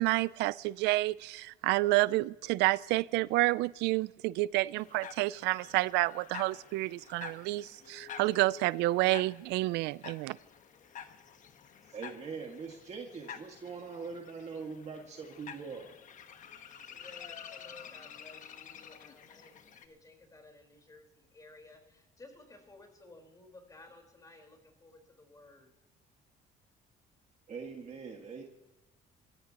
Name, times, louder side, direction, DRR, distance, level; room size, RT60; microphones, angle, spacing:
voice 1, 0.0-10.4, right 19 dB, 90° right, 0.4 m, -29 dB
sound 1, 4.8-19.9, left 8 dB, 50° left, 1.3 m, -49 dB
voice 2, 11.8-15.9 27.5-28.4, right 5 dB, 40° right, 1.9 m, -42 dB
voice 3, 16.9-25.7, left 2 dB, 20° left, 4.4 m, -56 dB
26.0 x 14.5 x 3.0 m
cardioid pair, 110°, 17 cm